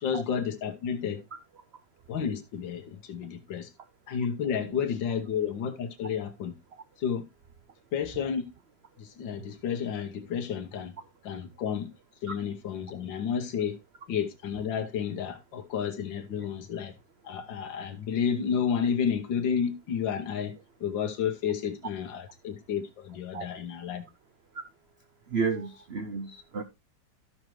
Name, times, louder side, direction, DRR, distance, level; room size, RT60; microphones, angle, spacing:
voice 1, 0.0-1.2 2.1-3.7 4.1-6.6 7.0-7.3 7.9-8.5 9.0-10.9 11.2-11.9 12.2-13.8 14.1-16.9 17.2-20.5 20.8-24.0, left 7 dB, 85° left, 1.8 m, -31 dB
voice 2, 25.3-26.6, right 5 dB, 55° right, 0.7 m, -31 dB
13.0 x 6.3 x 3.1 m
omnidirectional pair, 2.0 m